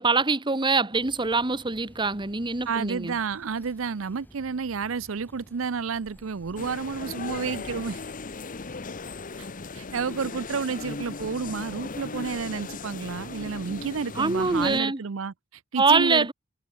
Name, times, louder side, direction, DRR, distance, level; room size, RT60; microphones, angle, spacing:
voice 1, 0.0-3.2 14.2-15.0 15.7-16.3, right 3 dB, 25° right, 1.3 m, -24 dB
sound 1, 0.9-7.8, equal, 10° left, 4.1 m, -53 dB
voice 2, 2.7-8.0 9.4-9.5 9.7-16.3, right 5 dB, 75° right, 0.6 m, -31 dB
sound 2, 6.6-14.8, left 3 dB, 40° left, 1.0 m, -37 dB
head